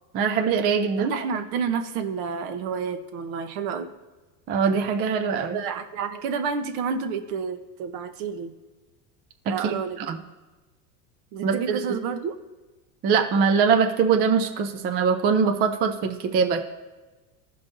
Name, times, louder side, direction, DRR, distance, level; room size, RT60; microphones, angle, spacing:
voice 1, 0.1-1.1 4.5-5.6 9.5-10.2 11.4-11.8 13.0-16.6, right 6 dB, 25° right, 5 dB, 0.3 m, -22 dB
voice 2, 1.0-3.9 5.5-8.5 9.5-10.0 11.3-12.3, right 6 dB, 65° right, 9 dB, 1.0 m, -29 dB
15.5 x 5.3 x 2.6 m, 1.2 s
supercardioid pair, 130°, 47 cm